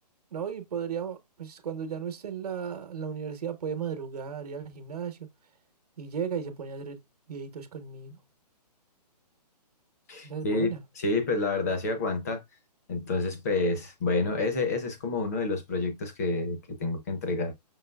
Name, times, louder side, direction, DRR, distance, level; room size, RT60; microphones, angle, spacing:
voice 1, 0.3-5.3 6.0-7.0 7.3-8.2 10.2-10.8, right 7 dB, 60° right, 1.0 m, -35 dB
voice 2, 10.1-12.4 12.9-17.5, left 3 dB, 25° left, 0.7 m, -29 dB
5.5 x 3.1 x 2.2 m
hypercardioid pair, 170°, 21 cm